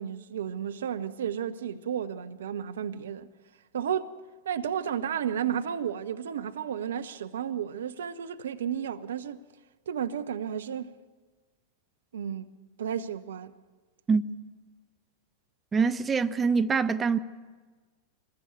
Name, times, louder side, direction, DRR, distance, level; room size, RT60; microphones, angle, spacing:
voice 1, 0.0-3.3 3.7-4.1 4.4-9.4 9.9-10.9 12.1-12.5 12.8-13.5, right 8 dB, 65° right, 0.9 m, -32 dB
voice 2, 15.7-17.2, right 5 dB, 15° right, 0.8 m, -24 dB
26.0 x 20.5 x 6.8 m
figure-of-eight pair, 90°, 0 cm